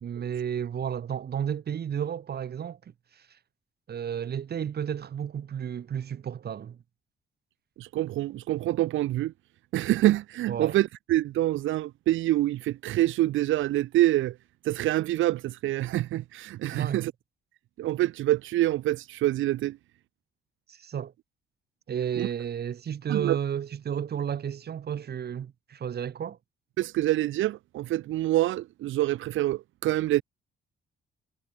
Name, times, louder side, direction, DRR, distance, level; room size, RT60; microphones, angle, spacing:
voice 1, 0.0-2.8 3.1-3.3 3.9-6.8 10.5-10.8 16.7-17.0 20.7-21.1 21.9-26.4, right 8 dB, 55° right, 2.0 m, -32 dB
voice 2, 7.8-9.3 9.7-14.3 14.6-17.1 17.8-19.8 22.2-22.3 23.1-23.4 26.8-30.2, right 15 dB, 80° right, 0.7 m, -26 dB
cardioid pair, 90°, 20 cm